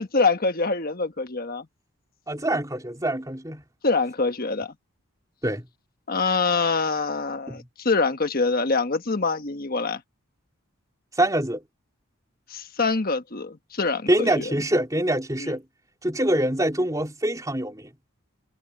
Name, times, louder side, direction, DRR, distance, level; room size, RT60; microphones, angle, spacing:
voice 1, 0.0-1.7 3.8-4.7 6.1-10.0 12.5-14.5 15.4-15.5, left 4 dB, 45° left, 1.3 m, -25 dB
voice 2, 2.3-3.6 5.4-5.7 7.5-7.6 11.2-11.6 14.1-15.6 16.0-17.9, right 1 dB, 15° right, 3.7 m, -24 dB
head